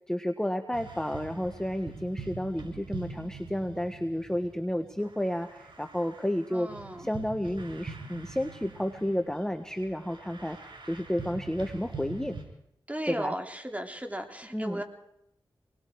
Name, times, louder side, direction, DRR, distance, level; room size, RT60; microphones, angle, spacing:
voice 1, 0.1-6.7 7.0-12.4 13.1-13.3 14.5-14.8, equal, 5° left, 7 dB, 1.4 m, -31 dB
sound 1, 0.7-12.4, right 4 dB, 60° right, 5.9 m, -44 dB
voice 2, 6.5-7.1 12.9-14.8, right 1 dB, 15° right, 4 dB, 3.5 m, -36 dB
27.0 x 21.0 x 4.7 m, 0.78 s
cardioid pair, 40°, 9 cm